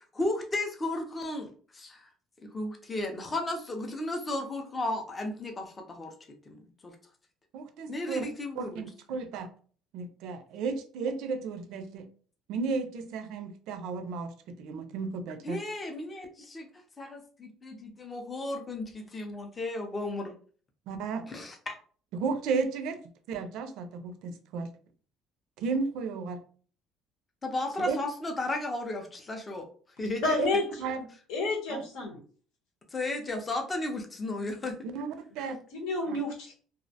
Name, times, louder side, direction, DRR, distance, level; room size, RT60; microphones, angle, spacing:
voice 1, 0.0-2.1 2.4-6.1 6.5-6.9 7.9-8.8 15.4-20.3 21.3-21.7 27.4-29.7 30.0-30.2 32.9-34.9, left 2 dB, 20° left, 3 dB, 0.4 m, -34 dB
voice 2, 7.5-8.3 8.6-9.5 9.9-12.1 12.5-15.6 20.9-21.3 22.1-23.0 23.3-24.7 25.6-26.4 27.9-28.0 30.4-30.5 30.8-31.1 31.7-31.8 34.9-35.6 36.1-36.2, right 4 dB, 70° right, 9 dB, 0.4 m, -33 dB
voice 3, 30.2-30.6 31.3-32.2 35.4-36.5, left 2 dB, 90° left, 0 dB, 0.9 m, -30 dB
2.4 x 2.0 x 2.7 m, 0.43 s
cardioid pair, 150°, 0 cm